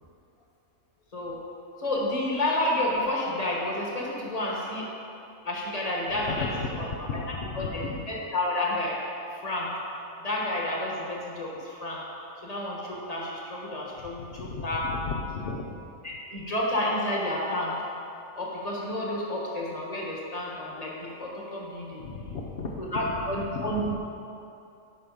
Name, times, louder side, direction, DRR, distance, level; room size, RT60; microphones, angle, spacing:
voice 1, 1.8-4.9 5.4-6.5 6.8-6.9 7.5-7.8 8.3-9.0 9.4-9.7 10.2-12.0 12.4-14.3 14.6-14.8 16.3-17.7 18.3-22.0 22.9-24.0, left 1 dB, 25° left, -4 dB, 1.5 m, -30 dB
voice 2, 6.1-8.1 14.0-15.8 22.0-24.0, left 4 dB, 50° left, -2 dB, 0.8 m, -35 dB
9.4 x 6.0 x 5.1 m, 2.7 s
omnidirectional pair, 1.5 m